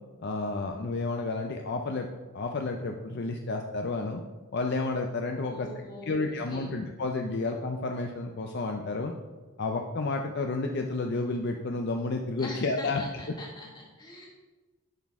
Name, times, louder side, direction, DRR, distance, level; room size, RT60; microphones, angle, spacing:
voice 1, 0.2-2.1 2.3-4.2 4.5-5.7 6.1-9.1 9.6-13.0, left 3 dB, 50° left, 3 dB, 0.5 m, -31 dB
voice 2, 5.5-6.7 12.4-14.3, left 1 dB, 20° left, -3 dB, 1.8 m, -43 dB
10.5 x 6.1 x 3.6 m, 1.2 s
head